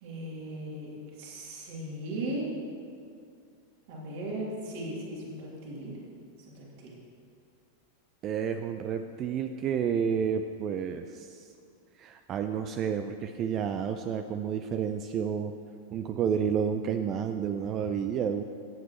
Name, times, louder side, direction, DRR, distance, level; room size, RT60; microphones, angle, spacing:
voice 1, 0.0-2.5 3.9-6.0 6.5-6.9, right 1 dB, 50° right, -4 dB, 2.8 m, -37 dB
voice 2, 8.2-11.5 12.0-15.5 15.9-18.4, right 7 dB, 35° right, 8 dB, 0.4 m, -30 dB
17.5 x 8.0 x 3.1 m, 2.4 s
figure-of-eight pair, 90°, 0 cm